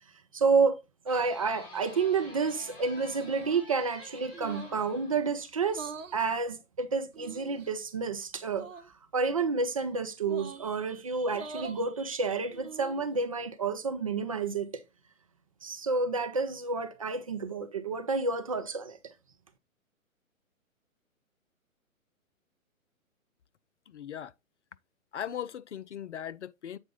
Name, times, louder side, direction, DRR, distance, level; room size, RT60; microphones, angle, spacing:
voice 1, 0.3-0.8 1.1-8.7 9.1-14.8 15.6-19.1, right 4 dB, 25° right, 0.5 m, -30 dB
sound 1, 1.1-5.6, left 2 dB, 35° left, 3.9 m, -50 dB
sound 2, 3.2-3.7 4.3-4.8 5.6-6.2 7.1-7.7 8.5-8.9 10.2-10.7 11.3-11.8 12.5-13.1, right 5 dB, 65° right, 1.0 m, -43 dB
voice 2, 23.9-24.3 25.1-26.8, left 9 dB, 55° left, 0.5 m, -38 dB
8.0 x 4.6 x 3.9 m
figure-of-eight pair, 130°, 42 cm